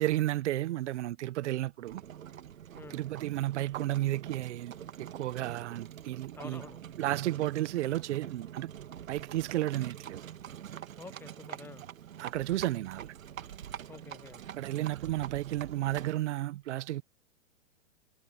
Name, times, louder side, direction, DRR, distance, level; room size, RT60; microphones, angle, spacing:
voice 1, 0.0-2.0 2.9-6.6 7.0-8.7 9.1-10.2 12.2-13.1 14.6-17.0, right 15 dB, 60° right, 1.1 m, -32 dB
Livestock farm animals working animals, 1.9-16.3, right 10 dB, 80° right, 2.2 m, -45 dB
voice 2, 6.3-6.8 11.0-11.8 13.9-14.4, left 4 dB, 5° left, 1.0 m, -48 dB
hypercardioid pair, 135°, 40 cm